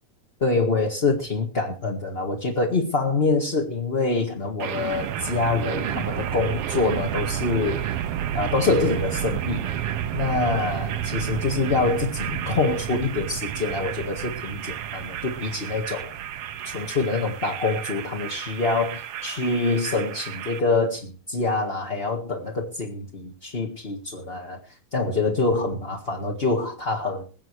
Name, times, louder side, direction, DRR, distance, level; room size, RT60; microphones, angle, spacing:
voice 1, 0.4-7.8 8.3-9.6 10.1-16.1 16.6-24.6 24.9-27.3, left 3 dB, 25° left, 0 dB, 1.4 m, -25 dB
sound 1, 4.6-20.6, right 10 dB, 70° right, 1.5 m, -31 dB
21.5 x 8.7 x 4.7 m, 0.34 s
omnidirectional pair, 3.6 m